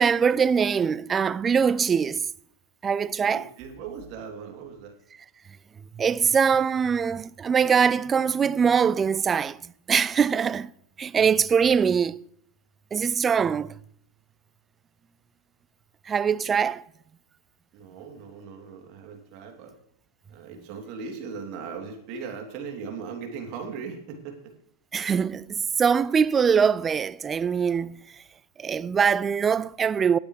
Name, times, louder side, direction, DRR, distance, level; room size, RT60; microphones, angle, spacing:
voice 1, 0.0-2.3 2.8-3.4 6.0-9.6 9.9-10.7 11.0-12.2 12.9-13.8 16.1-16.8 24.9-28.0 28.6-30.2, right 6 dB, 20° right, 0.4 m, -22 dB
voice 2, 3.2-4.9 17.7-19.7 20.3-24.4, right 5 dB, 50° right, 3.0 m, -38 dB
19.0 x 8.6 x 3.3 m
hypercardioid pair, 95°, 0 cm